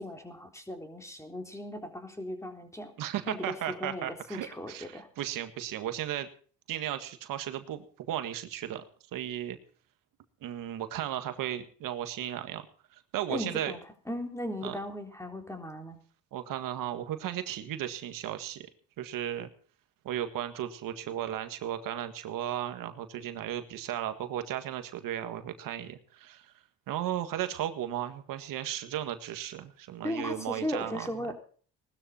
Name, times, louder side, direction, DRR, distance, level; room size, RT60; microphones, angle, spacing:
voice 1, 0.0-2.9 3.3-5.1 13.3-13.8 14.1-16.0 30.0-31.4, left 1 dB, 10° left, 4 dB, 3.7 m, -37 dB
voice 2, 3.0-6.3 6.7-8.8 9.1-9.6 10.4-12.6 12.9-13.7 14.6-14.8 16.3-18.7 19.0-19.5 20.0-26.5 26.9-31.1, right 11 dB, 80° right, 9 dB, 1.8 m, -35 dB
19.0 x 13.0 x 4.3 m, 0.43 s
cardioid pair, 90°, 33 cm